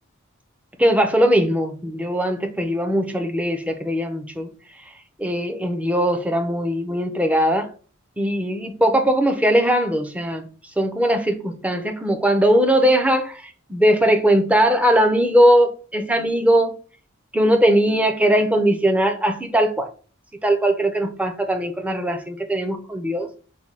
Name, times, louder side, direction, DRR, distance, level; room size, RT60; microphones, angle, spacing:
voice 1, 0.8-4.5 5.2-7.7 8.2-10.5 10.8-16.7 17.3-19.9 20.4-23.3, equal, 5° right, 0.5 m, -20 dB
4.2 x 2.2 x 4.6 m
head